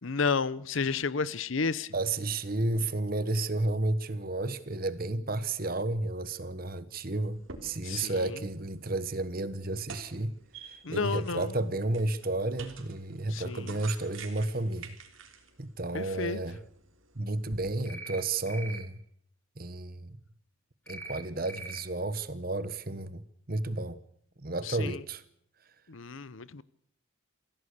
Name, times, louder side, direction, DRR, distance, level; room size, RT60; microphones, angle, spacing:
voice 1, 0.0-1.9 7.8-8.4 10.8-11.5 13.3-13.8 15.9-16.4 24.6-25.0 25.9-26.6, left 4 dB, 70° left, 0.8 m, -32 dB
voice 2, 1.9-10.3 10.9-15.0 15.6-16.6 17.1-19.0 19.6-20.2 20.9-24.0 24.4-25.2, right 2 dB, 45° right, 1.2 m, -32 dB
sound 1, 7.2-17.6, right 5 dB, 75° right, 3.5 m, -50 dB
sound 2, 17.9-18.2 18.5-18.8 20.9-21.2 21.5-21.8, right 2 dB, 10° left, 2.8 m, -42 dB
26.0 x 16.5 x 6.7 m
head